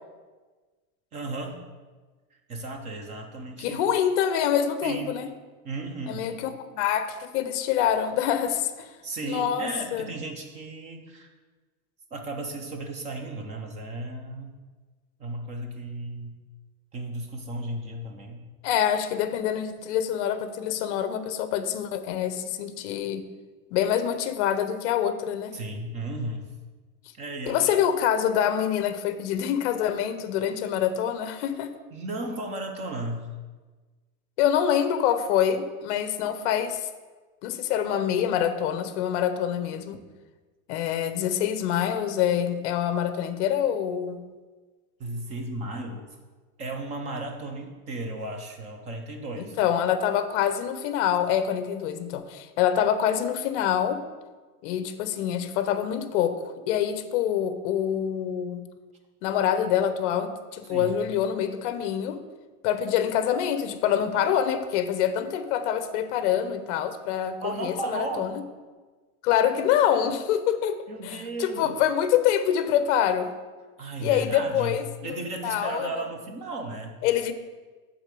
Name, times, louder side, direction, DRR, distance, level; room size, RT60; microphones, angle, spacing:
voice 1, 1.1-1.7 2.3-3.8 4.8-5.2 5.6-6.3 9.0-11.3 12.1-14.6 15.2-16.4 16.9-18.4 25.5-26.4 27.1-27.7 31.9-33.3 45.0-46.2 46.6-49.6 60.7-61.0 67.4-68.3 70.9-71.7 73.8-74.8 75.0-77.0, right 2 dB, 15° right, 4 dB, 0.4 m, -35 dB
voice 2, 3.6-5.3 6.1-8.9 9.2-10.1 18.6-23.2 23.7-25.6 27.5-31.7 34.4-36.9 37.4-40.0 40.7-44.3 49.4-54.0 54.6-58.7 59.2-62.2 62.6-68.4 69.2-73.3 74.0-74.8 75.1-75.2 75.4-76.0 77.0-77.3, left 9 dB, 50° left, 11 dB, 0.7 m, -26 dB
8.0 x 3.8 x 6.8 m, 1.3 s
supercardioid pair, 155°, 45 cm